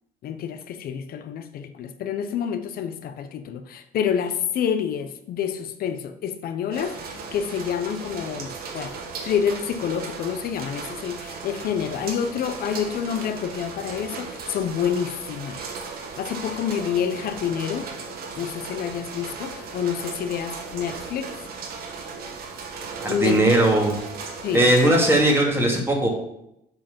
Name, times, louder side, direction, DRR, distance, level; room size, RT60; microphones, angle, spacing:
voice 1, 0.2-8.9 9.2-15.6 16.2-17.9 18.4-21.3 23.1-23.5 24.4-24.9, left 8 dB, 65° left, 0.7 m, -28 dB
sound 1, 6.7-25.2, right 4 dB, 65° right, 1.7 m, -36 dB
voice 2, 22.8-24.0 24.5-26.1, right 1 dB, 15° right, 2.7 m, -19 dB
7.7 x 4.7 x 7.2 m
cardioid pair, 110°, 17 cm